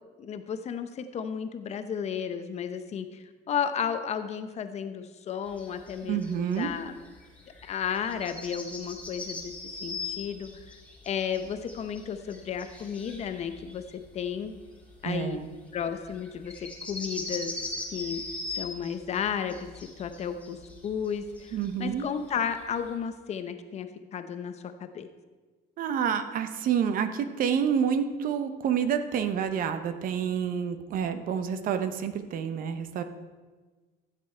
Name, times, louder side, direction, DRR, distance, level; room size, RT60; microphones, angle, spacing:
voice 1, 0.2-7.0 7.6-9.5 9.8-10.5 11.0-14.5 15.0-15.4 15.7-17.5 17.9-18.2 18.5-19.7 20.0-20.6 20.8-25.1, left 7 dB, 40° left, 9 dB, 0.7 m, -33 dB
sound 1, 5.5-22.9, left 3 dB, 10° left, 1.8 m, -41 dB
voice 2, 6.0-6.7 15.0-15.5 21.5-22.0 25.8-33.0, right 8 dB, 50° right, 9 dB, 0.8 m, -28 dB
13.5 x 7.7 x 4.4 m, 1.3 s
cardioid pair, 150°, 18 cm